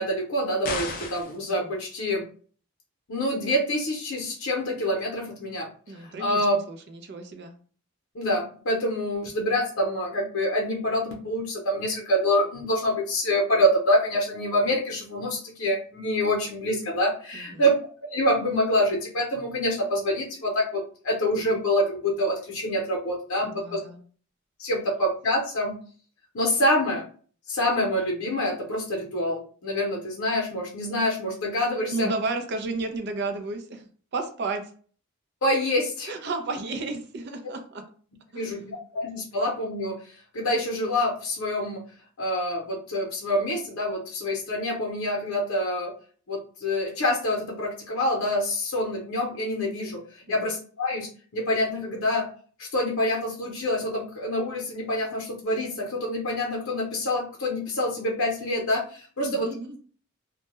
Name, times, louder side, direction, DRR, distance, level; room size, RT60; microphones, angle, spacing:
voice 1, 0.0-2.2 3.1-5.7 6.0-6.6 8.1-17.7 18.1-23.8 24.6-25.7 26.3-27.0 27.5-32.1 35.4-36.1 38.3-41.8 42.2-45.9 46.3-52.3 52.6-59.5, left 1 dB, 80° left, -1 dB, 0.7 m, -26 dB
sound 1, 0.6-1.4, left 3 dB, 45° left, 0.5 m, -32 dB
voice 2, 5.9-6.4 6.7-7.5 17.3-17.6 23.4-24.0 31.9-34.7 36.1-37.8 38.3-38.6 59.2-59.8, right 3 dB, 55° right, 6 dB, 0.5 m, -32 dB
2.2 x 2.1 x 2.9 m, 0.43 s
head